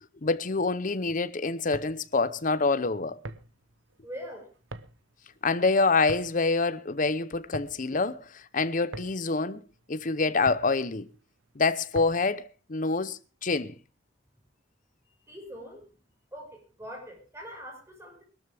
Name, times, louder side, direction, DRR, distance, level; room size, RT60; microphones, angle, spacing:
voice 1, 0.2-3.2 5.4-9.6 9.9-11.1 11.6-13.7, left 3 dB, 45° left, 0.8 m, -26 dB
sound 1, 1.5-12.4, right 2 dB, 80° right, 1.0 m, -46 dB
voice 2, 4.0-4.5 15.3-15.9 16.3-18.2, equal, 15° right, 5.4 m, -43 dB
21.5 x 13.0 x 3.5 m
head